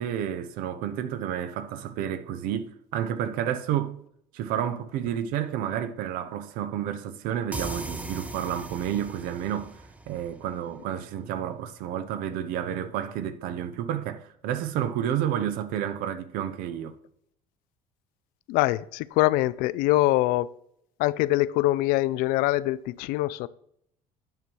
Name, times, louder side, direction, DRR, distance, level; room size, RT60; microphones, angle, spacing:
voice 1, 0.0-4.0 4.3-16.9, right 10 dB, 75° right, 0.8 m, -30 dB
sound 1, 7.5-11.0, right 2 dB, 10° right, 0.6 m, -39 dB
voice 2, 18.5-20.5 21.0-23.5, left 17 dB, 75° left, 0.4 m, -24 dB
9.2 x 5.4 x 4.6 m
cardioid pair, 105°, 15 cm